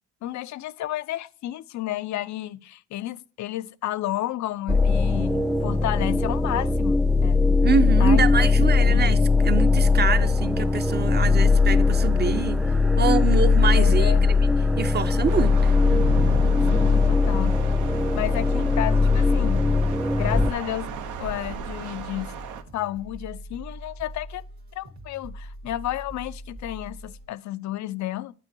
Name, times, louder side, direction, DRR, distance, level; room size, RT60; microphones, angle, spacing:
voice 1, 0.2-7.4 8.0-8.5 8.9-9.1 13.7-14.2 16.7-17.6 18.1-19.7 20.2-20.9 21.2-22.3 22.7-24.4 24.8-28.3, left 14 dB, 70° left, 0.5 m, -32 dB
sound 1, 4.7-20.5, left 4 dB, ahead, 0.3 m, -20 dB
voice 2, 7.6-14.3 14.8-15.7, right 6 dB, 35° right, 0.7 m, -26 dB
sound 2, 9.0-27.2, right 1 dB, 65° right, 1.8 m, -41 dB
Thunder / Rain, 15.3-22.6, right 7 dB, 80° right, 0.8 m, -35 dB
8.0 x 6.2 x 2.7 m
cardioid pair, 90°, 30 cm